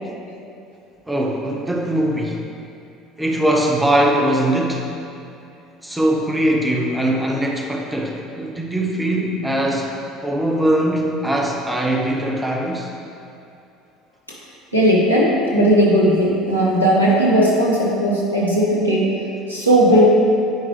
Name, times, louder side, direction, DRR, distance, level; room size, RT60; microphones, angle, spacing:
voice 1, 1.1-2.5 3.2-5.0 5.8-9.9 10.2-12.9, right 1 dB, 10° right, 0 dB, 0.9 m, -21 dB
voice 2, 14.7-19.1 19.5-20.0, right 1 dB, 90° left, -6 dB, 1.2 m, -16 dB
9.5 x 5.2 x 3.3 m, 2.6 s
figure-of-eight pair, 60°, 0 cm